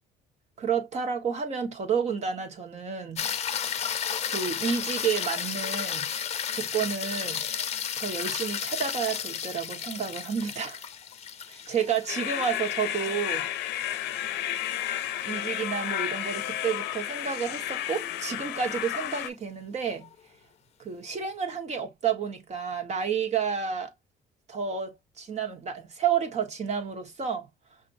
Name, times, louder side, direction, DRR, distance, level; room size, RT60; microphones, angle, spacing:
voice 1, 0.6-3.5 4.3-6.0 6.5-7.4 8.0-10.8 11.5-13.4 15.2-20.1 20.8-23.9 24.5-27.5, right 7 dB, 40° right, 1.5 m, -30 dB
sound 1, 3.2-15.6 20.0-20.1, left 8 dB, 40° left, 0.6 m, -33 dB
sound 2, 12.1-19.3, left 12 dB, 85° left, 0.6 m, -32 dB
5.6 x 2.6 x 2.6 m
cardioid pair, 110°, 17 cm